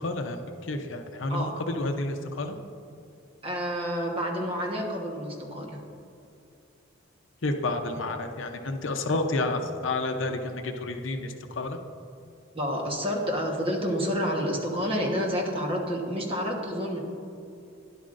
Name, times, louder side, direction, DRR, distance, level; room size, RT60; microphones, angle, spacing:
voice 1, 0.0-2.6 7.4-11.8, left 2 dB, 70° left, 6 dB, 0.7 m, -30 dB
voice 2, 3.4-5.7 12.5-17.0, equal, 25° right, 0 dB, 1.2 m, -29 dB
12.5 x 10.5 x 2.5 m, 2.6 s
head